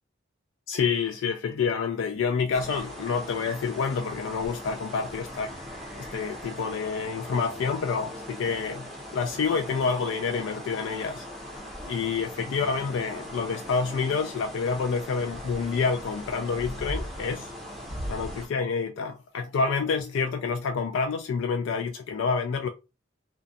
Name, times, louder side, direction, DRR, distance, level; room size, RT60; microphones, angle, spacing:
voice 1, 0.7-5.5 6.0-8.8 9.1-11.2 11.8-17.5 18.1-22.7, left 5 dB, 70° left, 0.3 m, -28 dB
sound 1, 2.5-18.5, equal, ahead, 0.7 m, -39 dB
2.5 x 2.2 x 2.5 m
head